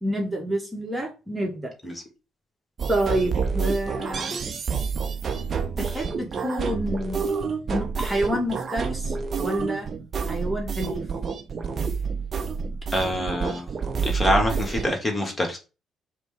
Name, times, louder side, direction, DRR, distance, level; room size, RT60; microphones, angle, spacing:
voice 1, 0.0-1.7 2.9-4.4 5.8-7.3 7.7-9.9 10.3-11.1 11.7-11.9, right 1 dB, 10° right, 1.2 m, -28 dB
sound 1, 2.8-15.0, right 5 dB, 40° right, 0.6 m, -28 dB
voice 2, 12.9-13.7 14.0-15.6, left 1 dB, 20° left, 1.5 m, -25 dB
5.0 x 2.2 x 4.8 m
figure-of-eight pair, 45°, 0 cm